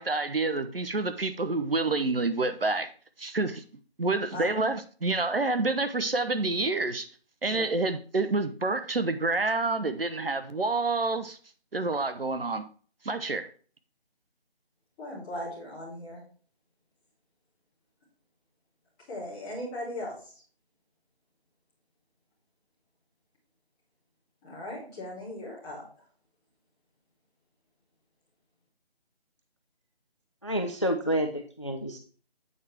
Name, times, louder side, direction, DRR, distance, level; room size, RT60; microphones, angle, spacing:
voice 1, 0.0-2.9 3.2-3.6 4.0-7.1 7.4-11.4 11.7-12.6 13.0-13.5, right 3 dB, 60° right, 1.0 m, -28 dB
voice 2, 15.0-16.2 19.1-20.2 24.4-25.8, left 1 dB, 10° left, 2.4 m, -38 dB
voice 3, 30.4-32.0, equal, 30° left, 0.5 m, -29 dB
8.6 x 4.9 x 4.4 m
figure-of-eight pair, 160°, 32 cm